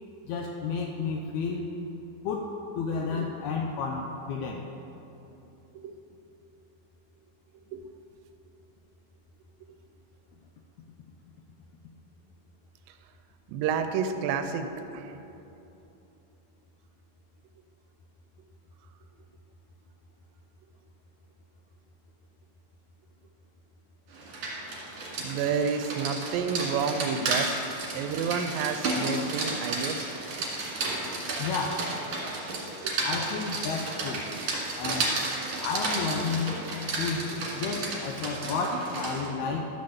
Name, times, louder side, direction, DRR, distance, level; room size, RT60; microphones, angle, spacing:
voice 1, 0.2-1.7 2.2-4.7 31.4-31.9 33.0-34.2 34.8-35.1 35.6-36.7 37.0-37.3 37.6-39.8, left 4 dB, 80° left, 3 dB, 1.6 m, -31 dB
voice 2, 13.5-15.2 25.2-27.5 27.9-30.5 30.9-31.0 32.8-33.0 39.4-39.6, right 6 dB, 85° right, 8 dB, 2.3 m, -30 dB
Rain, 24.1-39.3, right 2 dB, 50° right, 2.8 m, -32 dB
12.5 x 6.5 x 7.0 m, 3.0 s
omnidirectional pair, 4.0 m